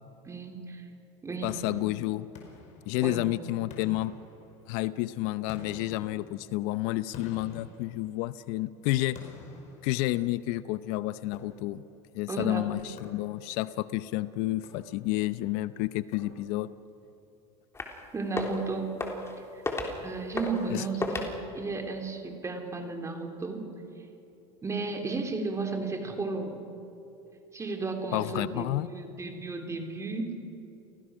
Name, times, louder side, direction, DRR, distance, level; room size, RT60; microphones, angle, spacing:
voice 1, 0.2-0.9 1.2-1.5 3.0-3.3 12.3-12.8 18.1-19.0 20.0-21.2 21.5-23.7 24.6-26.6 27.5-30.4, right 3 dB, 20° right, 4 dB, 3.4 m, -34 dB
voice 2, 1.4-2.3 2.9-4.1 4.7-9.2 9.8-11.8 12.1-16.7 20.7-20.9 28.1-28.9, left 17 dB, 65° left, 15 dB, 0.7 m, -30 dB
sound 1, 1.5-3.3 3.7-4.9 5.5-8.5 9.1-10.6 11.3-12.0 13.0-13.7 14.5-15.3 16.1-16.8, left 4 dB, 50° left, 5.2 m, -50 dB
sound 2, 17.7-18.0 18.3-18.6 19.0-19.3 19.6-19.9 20.4-20.7 21.0-21.3, left 2 dB, 15° left, 3.4 m, -32 dB
29.5 x 18.5 x 6.3 m, 2.9 s
supercardioid pair, 115°, 16 cm